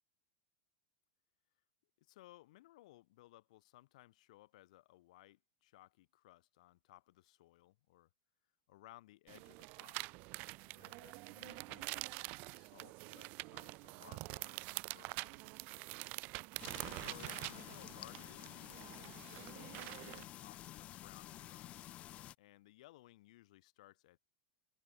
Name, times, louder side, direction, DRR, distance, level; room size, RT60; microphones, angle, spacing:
voice 1, 2.0-8.1 8.7-10.0 10.6-15.5 17.0-18.8 19.2-21.8 22.4-24.2, left 17 dB, 70° left, 3.2 m, -61 dB
sound 1, 9.3-20.2, right 26 dB, 45° right, 0.4 m, -46 dB
sound 2, 16.6-22.3, left 14 dB, 30° left, 0.9 m, -51 dB
supercardioid pair, 145°, 4 cm